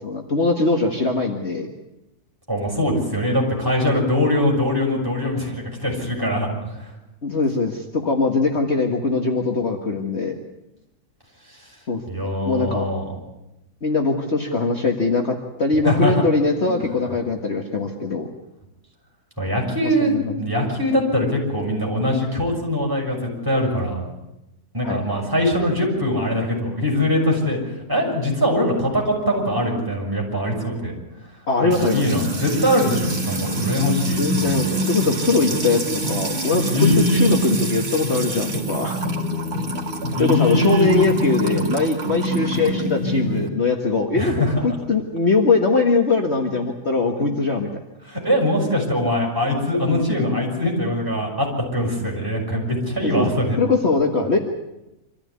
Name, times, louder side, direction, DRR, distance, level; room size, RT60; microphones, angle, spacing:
voice 1, 0.0-1.7 7.2-10.4 11.9-12.0 12.4-12.9 13.8-18.3 19.8-20.4 24.8-25.0 31.5-32.0 34.2-39.0 40.2-44.3 44.6-47.7 53.0-53.3 53.6-54.4, left 3 dB, 45° left, 2 dB, 1.9 m, -21 dB
voice 2, 2.5-6.5 6.8-6.9 12.1-13.1 15.8-16.2 16.6-16.8 19.4-24.0 24.7-27.6 27.9-30.9 31.6-34.7 36.7-37.3 40.2-40.9 44.1-44.6 48.1-53.6, left 1 dB, 15° right, -2 dB, 6.5 m, -22 dB
Music / Water tap faucet / Trickle dribble, 31.7-43.5, right 1 dB, 40° right, 2.5 m, -26 dB
25.5 x 14.5 x 9.7 m, 0.94 s
omnidirectional pair, 1.7 m